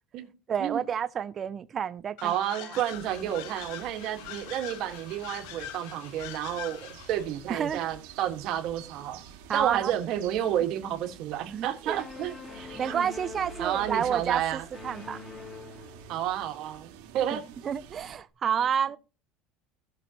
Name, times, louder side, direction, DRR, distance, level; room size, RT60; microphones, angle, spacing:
voice 1, 0.5-2.8 7.5-7.8 9.5-9.9 11.5-12.0 12.8-15.2 17.3-19.0, right 8 dB, 25° right, 0.4 m, -30 dB
sound 1, 2.2-7.3, left 13 dB, 65° left, 0.7 m, -43 dB
voice 2, 2.2-9.2 9.5-13.1 13.6-14.6 16.1-17.4, right 11 dB, 45° right, 1.5 m, -31 dB
sound 2, 2.9-18.2, right 8 dB, 80° right, 1.9 m, -49 dB
sound 3, 11.9-16.5, left 3 dB, 20° left, 1.7 m, -44 dB
16.5 x 6.2 x 2.9 m
cardioid pair, 170°, 0 cm